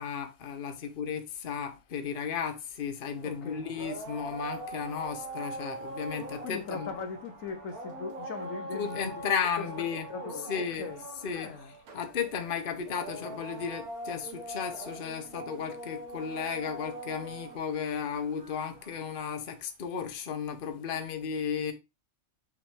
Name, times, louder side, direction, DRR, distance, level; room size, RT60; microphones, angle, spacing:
voice 1, 0.0-6.9 8.7-21.7, left 7 dB, 45° left, 1.0 m, -34 dB
sound 1, 3.0-19.4, right 1 dB, 90° right, 1.7 m, -42 dB
voice 2, 3.2-3.7 6.4-9.1 9.6-9.7 10.1-11.0 11.3-11.7, left 5 dB, 70° left, 1.1 m, -39 dB
5.9 x 5.4 x 3.4 m
omnidirectional pair, 1.5 m